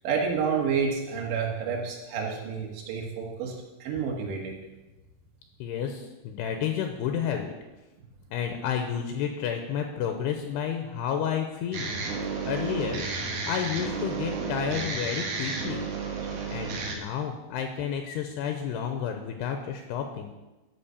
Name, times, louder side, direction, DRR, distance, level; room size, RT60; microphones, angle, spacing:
voice 1, 0.0-3.5 3.8-4.6, right 6 dB, 75° right, 0 dB, 3.9 m, -29 dB
voice 2, 5.6-7.5 8.3-11.9 12.4-13.0 13.5-15.9 16.5-20.3, left 8 dB, 80° left, 5 dB, 2.7 m, -31 dB
sound 1, 11.7-17.0, right 4 dB, 60° right, 2.3 m, -32 dB
13.0 x 5.2 x 6.9 m, 1.1 s
omnidirectional pair, 5.1 m